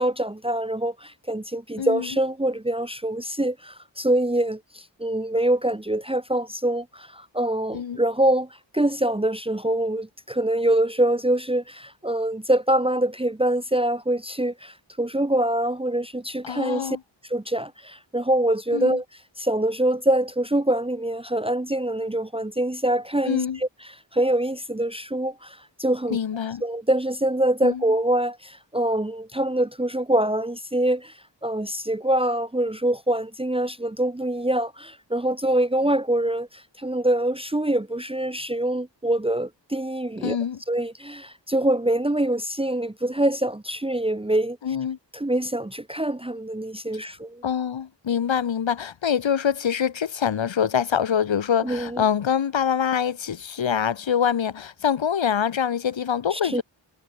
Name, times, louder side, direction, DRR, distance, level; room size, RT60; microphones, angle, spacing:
voice 1, 0.0-8.5 8.7-17.0 17.3-19.0 19.4-23.7 24.1-26.2 26.6-31.1 31.4-40.4 40.7-44.6 45.1-47.4 51.6-52.0 56.3-56.6, right 1 dB, 10° right, 1.0 m, -24 dB
voice 2, 1.8-2.1 7.7-8.0 16.4-17.0 18.7-19.0 23.3-23.6 26.1-26.6 27.6-27.8 40.2-40.6 44.6-45.0 47.4-56.6, left 8 dB, 85° left, 1.2 m, -25 dB
wide cardioid pair, 75°, 44 cm